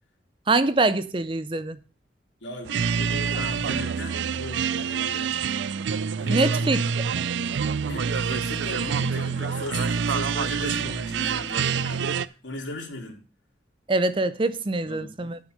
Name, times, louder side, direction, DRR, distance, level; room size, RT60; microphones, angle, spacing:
voice 1, 0.5-1.8 6.3-6.8 13.9-15.4, right 2 dB, 30° right, 0.5 m, -24 dB
voice 2, 2.4-5.3 6.2-6.8 7.8-13.2 14.8-15.4, left 2 dB, 90° left, 3.2 m, -37 dB
sound 1, 2.7-12.3, right 6 dB, 80° right, 0.4 m, -26 dB
8.7 x 6.2 x 6.7 m
head